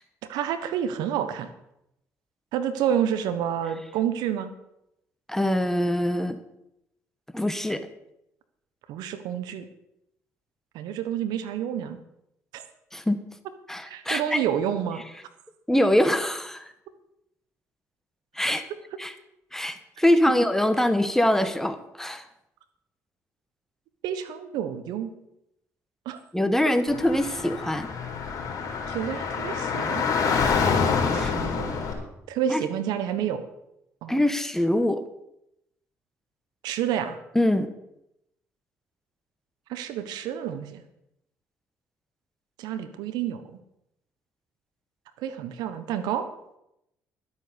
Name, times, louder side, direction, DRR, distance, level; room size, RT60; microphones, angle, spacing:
voice 1, 0.3-1.5 2.5-4.5 8.9-9.6 10.7-12.0 12.5-12.6 13.9-15.0 24.0-25.1 26.0-26.2 28.9-30.0 31.1-31.9 32.3-33.4 34.0-34.2 36.6-37.2 39.7-40.8 42.6-43.6 45.2-46.3, right 9 dB, 75° right, 10 dB, 1.2 m, -29 dB
voice 2, 5.3-6.4 7.3-7.9 12.9-13.2 13.7-14.4 15.7-16.7 18.3-18.6 19.0-19.1 19.5-22.2 26.3-27.9 31.1-31.3 32.5-32.6 34.1-35.0 37.3-37.7, left 1 dB, 5° left, 10 dB, 1.5 m, -23 dB
Car / Traffic noise roadway noise, 26.9-31.9, left 5 dB, 60° left, 3.9 m, -26 dB
12.0 x 8.3 x 7.0 m, 0.83 s
hypercardioid pair, 60°, 7 cm